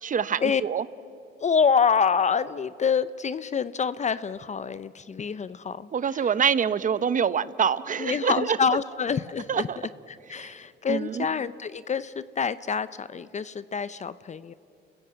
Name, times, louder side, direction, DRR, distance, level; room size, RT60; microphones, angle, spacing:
voice 1, 0.0-0.8 5.9-8.6 9.5-9.8 10.4-10.5 10.9-11.3, right 7 dB, 40° right, 17 dB, 0.8 m, -25 dB
voice 2, 1.4-5.9 8.0-9.7 10.1-14.5, left 6 dB, 35° left, 16 dB, 0.6 m, -26 dB
30.0 x 15.5 x 8.8 m, 2.5 s
cardioid pair, 90°, 20 cm